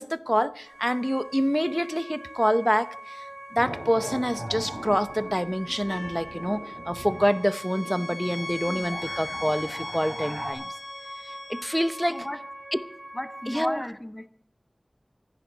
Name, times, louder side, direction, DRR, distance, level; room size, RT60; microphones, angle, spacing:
voice 1, 0.0-3.2 3.5-10.6 11.5-12.2 13.5-13.8, equal, ahead, 0.8 m, -26 dB
sound 1, 0.7-13.7, right 1 dB, 50° right, 5.9 m, -42 dB
sound 2, 3.6-10.5, right 1 dB, 35° right, 4.7 m, -40 dB
sound 3, 5.9-6.4 7.2-12.3, left 2 dB, 60° left, 1.2 m, -39 dB
voice 2, 8.7-9.0 12.1-12.4 13.1-14.3, left 1 dB, 20° left, 1.2 m, -34 dB
26.5 x 10.5 x 4.0 m
wide cardioid pair, 50°, 0 cm